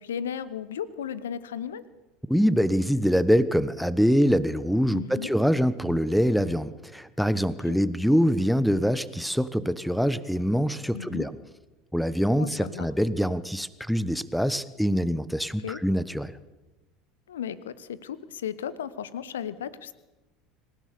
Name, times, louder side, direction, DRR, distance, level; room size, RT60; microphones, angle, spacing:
voice 1, 0.0-1.8 4.9-5.3 7.7-7.8 10.9-11.3 12.4-12.9 15.6-15.8 17.3-19.9, left 8 dB, 70° left, 17 dB, 1.1 m, -35 dB
voice 2, 2.3-11.3 11.9-16.3, equal, ahead, 16 dB, 1.1 m, -24 dB
26.5 x 16.5 x 6.9 m, 1.1 s
figure-of-eight pair, 70°, 0 cm